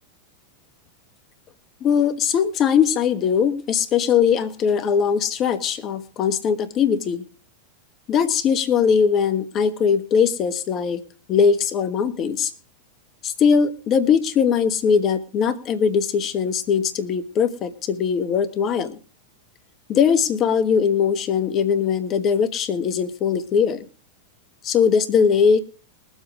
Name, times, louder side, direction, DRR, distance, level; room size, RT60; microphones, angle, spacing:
voice 1, 1.8-7.2 8.1-11.0 11.3-12.5 13.2-18.9 19.9-23.8 24.6-25.6, left 7 dB, 30° left, 10 dB, 1.4 m, -20 dB
20.5 x 7.7 x 5.0 m, 0.37 s
figure-of-eight pair, 90°, 0 cm